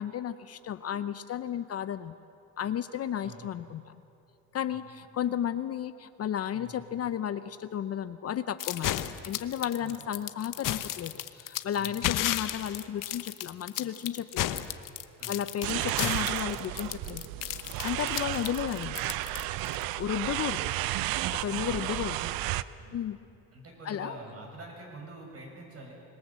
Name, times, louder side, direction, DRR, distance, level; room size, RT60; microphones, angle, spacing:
voice 1, 0.0-2.1 2.6-4.0 4.5-9.0 9.2-14.5 15.3-17.2 17.8-19.1 20.0-20.7 21.4-22.2 22.9-23.2 23.9-24.2, left 10 dB, 45° left, 13 dB, 0.7 m, -33 dB
voice 2, 6.5-6.8 9.8-10.1 11.7-12.0 15.2-15.5 21.2-22.0 22.8-23.0 23.5-25.9, right 2 dB, 40° right, 0 dB, 7.1 m, -47 dB
sound 1, 8.6-19.8, left 13 dB, 60° left, 1.0 m, -33 dB
sound 2, 15.6-22.6, right 15 dB, 75° right, 0.7 m, -32 dB
26.0 x 21.5 x 7.5 m, 2.8 s
cardioid pair, 130°, 36 cm